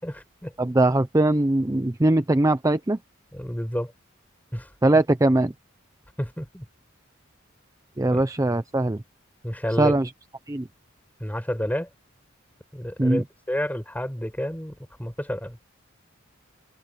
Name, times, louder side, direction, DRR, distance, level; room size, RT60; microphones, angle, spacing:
voice 1, 0.0-0.5 3.3-3.9 4.5-4.7 6.2-6.7 8.1-8.2 9.4-9.9 11.2-11.9 12.7-15.6, equal, 10° left, 5.2 m, -30 dB
voice 2, 0.6-3.0 4.8-5.5 8.0-9.0 9.8-10.1 10.5-10.6 13.0-13.2, right 2 dB, 15° right, 0.6 m, -21 dB
head